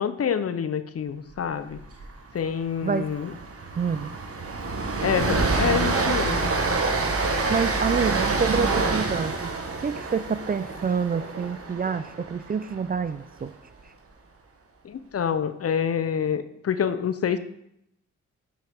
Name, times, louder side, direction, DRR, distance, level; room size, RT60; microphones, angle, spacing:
voice 1, 0.0-1.8 2.3-3.3 5.0-6.5 14.8-17.4, left 7 dB, 50° left, 11 dB, 0.6 m, -27 dB
Train, 1.7-2.0 2.3-2.5 2.8-13.0, right 3 dB, 50° right, 1.1 m, -27 dB
voice 2, 2.8-3.1 3.8-4.1 7.5-9.5 9.8-13.5, right 6 dB, 30° right, 13 dB, 0.4 m, -27 dB
7.4 x 5.0 x 3.5 m, 0.76 s
supercardioid pair, 45°, 30 cm